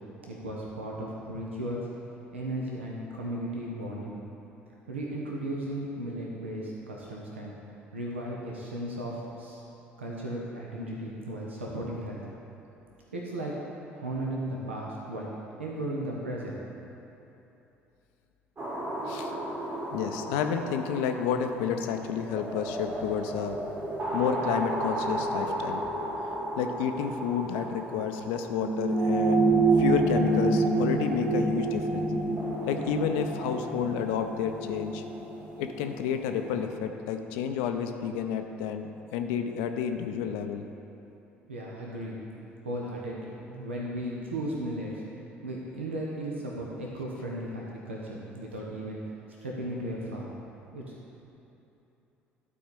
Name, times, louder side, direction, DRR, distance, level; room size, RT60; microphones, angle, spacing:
voice 1, 0.2-1.8 2.3-4.1 4.9-7.5 7.9-9.6 10.0-12.2 13.1-13.5 13.9-15.3 15.6-16.6 41.5-42.2 42.6-45.0 45.4-49.0 49.4-50.3 50.7-50.8, right 1 dB, 85° right, -3 dB, 0.9 m, -35 dB
sound 1, 18.6-36.6, right 2 dB, 40° right, 2.1 m, -30 dB
voice 2, 19.9-23.6 24.1-25.8 26.6-29.5 29.8-32.1 32.7-35.0 35.6-40.6, left 8 dB, 65° left, 6 dB, 0.5 m, -30 dB
11.5 x 4.3 x 5.2 m, 3.0 s
figure-of-eight pair, 55°, 6 cm